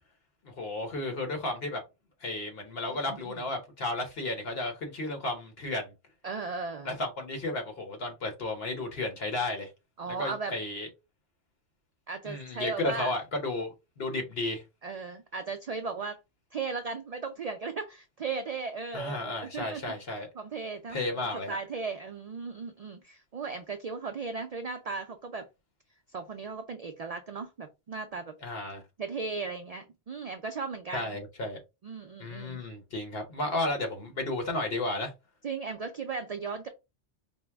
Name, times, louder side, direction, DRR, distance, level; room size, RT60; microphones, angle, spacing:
voice 1, 0.4-1.8 2.2-5.9 6.8-9.7 10.2-10.9 12.2-14.6 18.9-20.3 20.9-21.6 28.4-28.8 30.9-31.6 32.2-35.1, left 2 dB, 60° left, 1.1 m, -33 dB
voice 2, 2.9-3.4 6.2-7.0 10.0-10.5 12.1-13.1 14.8-16.2 16.5-19.8 20.4-25.5 26.1-28.3 29.0-31.2 31.8-32.6 35.4-36.7, right 4 dB, 80° right, 0.3 m, -36 dB
4.5 x 2.0 x 3.4 m
omnidirectional pair, 1.2 m